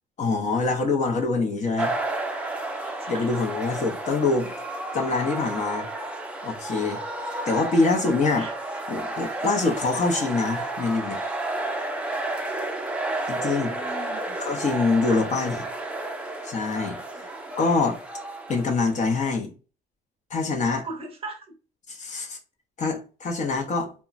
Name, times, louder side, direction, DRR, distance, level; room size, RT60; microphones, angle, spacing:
voice 1, 0.2-1.9 3.1-4.5 4.9-5.9 6.4-11.2 13.3-13.7 14.4-15.6 16.4-17.0 17.6-18.0 18.5-19.5 20.3-20.9 21.9-22.4 22.8-23.9, left 3 dB, 45° left, 0.7 m, -25 dB
sound 1, 1.8-19.4, right 2 dB, 5° right, 0.5 m, -32 dB
voice 2, 13.6-14.4 15.1-15.3 17.1-17.3 20.7-21.4, right 2 dB, 35° right, 0.8 m, -39 dB
2.9 x 2.2 x 2.4 m
cardioid pair, 110°, 17 cm